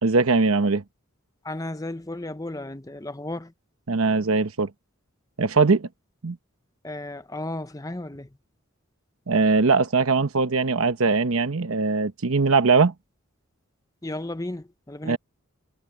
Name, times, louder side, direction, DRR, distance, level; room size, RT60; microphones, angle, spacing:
voice 1, 0.0-0.8 3.9-4.7 5.4-5.9 6.2-6.4 9.3-12.9 15.0-15.2, right 4 dB, 80° right, 1.0 m, -21 dB
voice 2, 1.4-3.5 6.8-8.4 14.0-15.2, left 1 dB, 15° left, 0.8 m, -34 dB
head